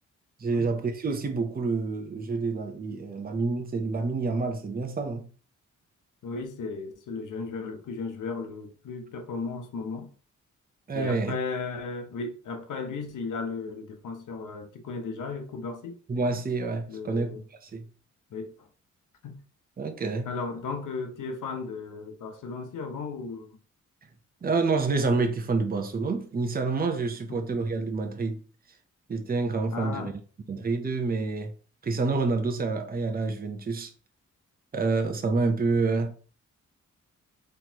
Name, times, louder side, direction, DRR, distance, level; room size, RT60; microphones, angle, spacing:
voice 1, 0.4-5.3 10.9-11.4 16.1-17.9 19.8-20.3 24.4-28.4 29.1-30.1 30.5-31.5 31.8-33.9 34.7-36.1, right 3 dB, 30° right, 0.7 m, -28 dB
voice 2, 6.2-10.1 10.9-16.0 16.9-17.4 18.3-18.7 19.2-19.4 20.3-23.5 27.3-27.4 29.7-30.1, left 4 dB, 80° left, 0.9 m, -35 dB
4.1 x 3.2 x 2.9 m
cardioid pair, 70°, 30 cm